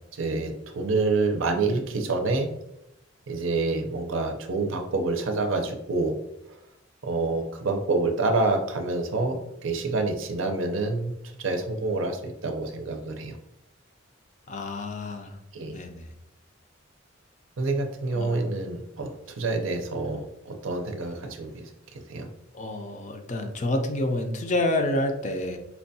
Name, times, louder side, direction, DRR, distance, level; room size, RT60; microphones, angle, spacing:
voice 1, 0.1-2.5 3.3-6.2 6.5-6.6 7.0-11.1 11.4-13.4 15.5-15.8 17.6-22.3, right 3 dB, 80° right, 4 dB, 0.5 m, -27 dB
voice 2, 14.5-15.3 15.7-16.1 18.1-18.4 22.5-25.6, left 1 dB, 40° left, 5 dB, 0.4 m, -28 dB
4.3 x 2.2 x 2.7 m, 0.83 s
head